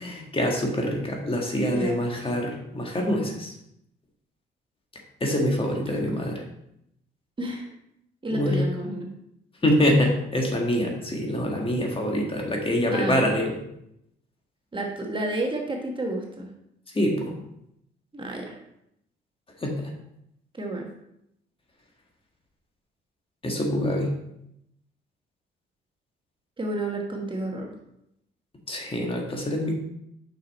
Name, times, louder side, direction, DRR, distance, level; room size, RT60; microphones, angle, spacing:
voice 1, 0.0-3.5 5.2-6.4 8.3-8.7 9.6-13.5 16.9-17.3 19.6-19.9 23.4-24.1 28.7-29.7, left 1 dB, 25° left, 0 dB, 1.7 m, -25 dB
voice 2, 1.7-2.0 5.9-6.0 7.4-7.7 8.2-9.1 12.9-13.4 14.7-16.5 18.1-18.6 20.5-20.9 26.6-27.7, right 1 dB, 25° right, 1 dB, 1.2 m, -31 dB
6.1 x 5.9 x 4.2 m, 0.79 s
cardioid pair, 90°, 20 cm